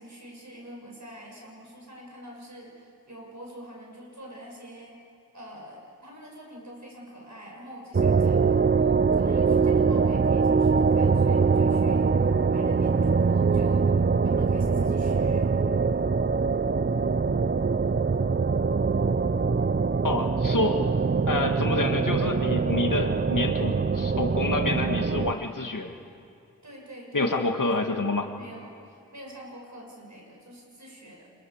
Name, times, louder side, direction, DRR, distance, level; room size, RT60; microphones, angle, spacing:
voice 1, 0.0-5.0 5.3-12.1 12.5-13.9 14.2-15.5 26.6-27.3 27.6-28.0 28.3-31.3, equal, 55° right, -2 dB, 7.4 m, -46 dB
sound 1, 7.9-25.3, right 5 dB, 30° right, 0.6 m, -23 dB
voice 2, 20.0-20.8 21.3-25.9 27.1-28.3, left 2 dB, 60° left, 4 dB, 2.1 m, -28 dB
27.5 x 27.0 x 7.4 m, 2.4 s
wide cardioid pair, 65°, 35 cm